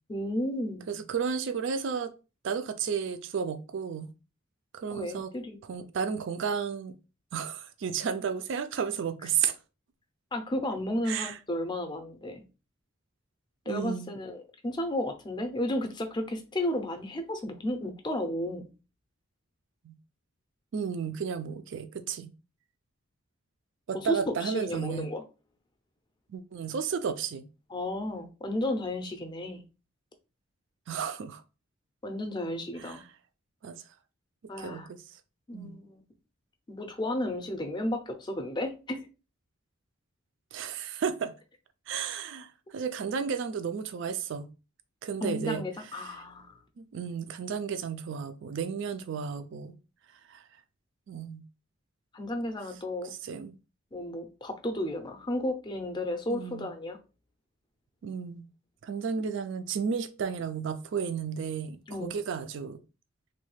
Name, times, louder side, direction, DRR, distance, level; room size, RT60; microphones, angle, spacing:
voice 1, 0.1-1.0 4.9-5.9 10.3-12.4 13.7-18.7 23.9-25.2 27.7-29.6 32.0-33.0 34.5-34.9 35.5-36.0 36.7-39.1 45.2-46.6 52.1-53.1 53.9-57.0 61.9-62.2, left 1 dB, 20° left, 0.5 m, -33 dB
voice 2, 0.9-2.1 2.4-4.1 4.7-5.3 5.7-6.9 7.3-9.6 11.1-11.4 13.7-14.1 19.8-19.9 20.7-22.3 23.9-25.1 26.3-27.5 30.9-31.4 32.8-33.0 33.6-33.8 34.6-35.0 35.5-35.8 40.5-41.3 41.9-44.5 45.0-45.6 45.9-46.1 46.8-49.8 50.3-50.4 51.1-51.4 53.1-53.6 56.3-56.7 58.0-58.4 58.8-62.8, right 6 dB, 60° right, 0.3 m, -33 dB
3.2 x 2.2 x 3.1 m
head